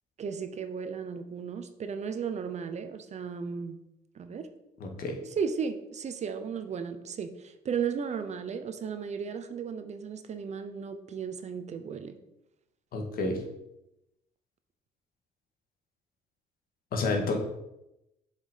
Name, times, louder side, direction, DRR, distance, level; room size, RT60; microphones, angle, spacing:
voice 1, 0.2-3.8 4.1-4.5 5.4-12.2, right 6 dB, 40° right, 9 dB, 0.8 m, -35 dB
voice 2, 4.8-5.2 12.9-13.4 16.9-17.4, left 3 dB, 60° left, 2 dB, 1.8 m, -29 dB
7.2 x 5.9 x 5.1 m, 0.89 s
cardioid pair, 110°, 17 cm